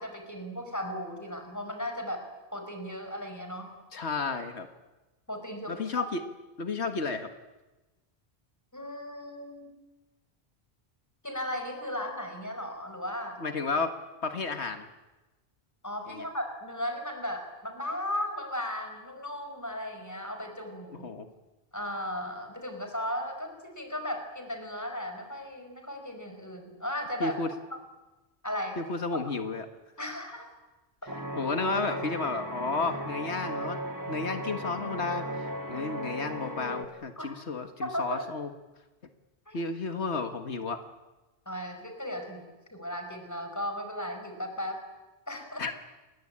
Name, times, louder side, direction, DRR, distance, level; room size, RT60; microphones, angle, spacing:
voice 1, 0.0-2.3 2.5-3.7 5.3-6.1 8.7-9.7 11.2-13.4 15.8-21.1 21.7-27.4 27.7-27.8 28.4-28.8 30.0-30.5 37.2-37.3 37.8-38.3 39.5-39.6 41.4-42.4 42.7-44.8 45.3-45.7, left 1 dB, 15° left, 5 dB, 5.1 m, -36 dB
voice 2, 3.9-4.7 5.7-6.2 6.6-7.3 13.4-14.0 14.2-14.9 16.1-16.3 20.9-21.3 27.2-27.5 28.8-29.7 31.4-33.8 34.1-38.5 39.5-40.8 45.6-45.7, left 4 dB, 90° left, 8 dB, 1.9 m, -32 dB
sound 1, 31.1-36.9, right 1 dB, 15° right, 2.5 m, -36 dB
29.0 x 21.5 x 8.8 m, 1.1 s
omnidirectional pair, 1.1 m